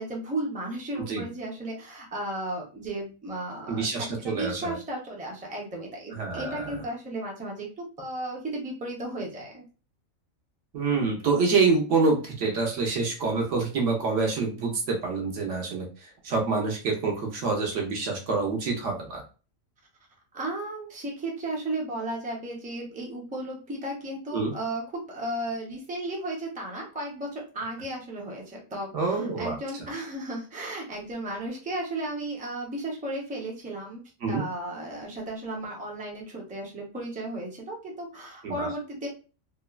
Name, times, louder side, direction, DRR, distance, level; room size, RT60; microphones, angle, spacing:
voice 1, 0.0-9.6 20.3-24.8 25.1-34.0 34.3-39.1, right 1 dB, 10° right, -1 dB, 0.4 m, -34 dB
voice 2, 3.7-4.7 6.2-6.8 10.7-15.9 16.2-19.2 24.3-24.5 28.9-29.6 34.2-34.4 38.4-38.7, right 4 dB, 65° right, 1 dB, 1.0 m, -26 dB
2.9 x 2.1 x 2.3 m, 0.35 s
omnidirectional pair, 1.4 m